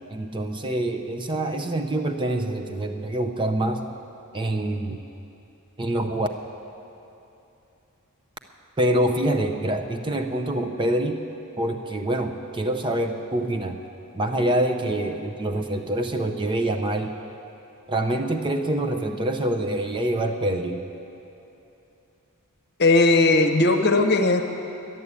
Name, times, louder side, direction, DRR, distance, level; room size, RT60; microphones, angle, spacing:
voice 1, 0.1-3.8 4.3-5.0 5.8-6.3 8.8-11.2 11.6-13.8 14.1-17.2 17.9-20.8, right 1 dB, 20° right, 5 dB, 0.6 m, -25 dB
voice 2, 22.8-24.4, left 2 dB, 50° left, 6 dB, 0.9 m, -18 dB
11.0 x 11.0 x 8.3 m, 2.9 s
head